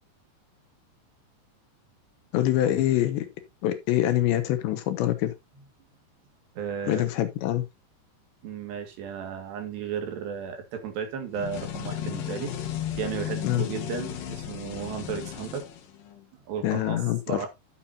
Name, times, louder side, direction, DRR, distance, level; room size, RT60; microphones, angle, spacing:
voice 1, 2.3-3.3 3.6-5.3 6.9-7.7 13.4-13.6 16.6-17.5, left 13 dB, 75° left, 3.4 m, -25 dB
voice 2, 6.6-7.2 8.4-12.5 12.9-15.7 16.5-17.0 17.3-17.5, right 7 dB, 70° right, 4.1 m, -34 dB
sound 1, 11.3-16.2, left 11 dB, 60° left, 2.7 m, -35 dB
12.5 x 7.5 x 2.8 m
omnidirectional pair, 5.2 m